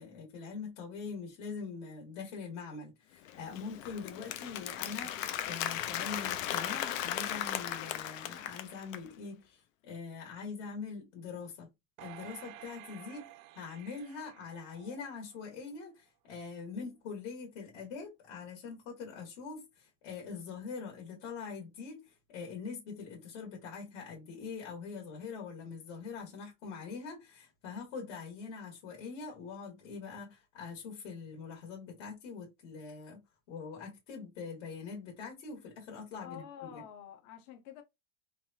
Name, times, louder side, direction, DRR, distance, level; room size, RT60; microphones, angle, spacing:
voice 1, 0.0-11.7 12.0-36.8, left 5 dB, 65° left, 1.5 m, -43 dB
Applause, 3.3-9.1, left 11 dB, 85° left, 0.6 m, -37 dB
sound 1, 12.0-15.4 15.9-16.0, right 13 dB, 85° right, 0.6 m, -52 dB
voice 2, 36.2-37.8, left 10 dB, 30° left, 0.5 m, -48 dB
3.3 x 2.3 x 2.6 m
supercardioid pair, 175°, 39 cm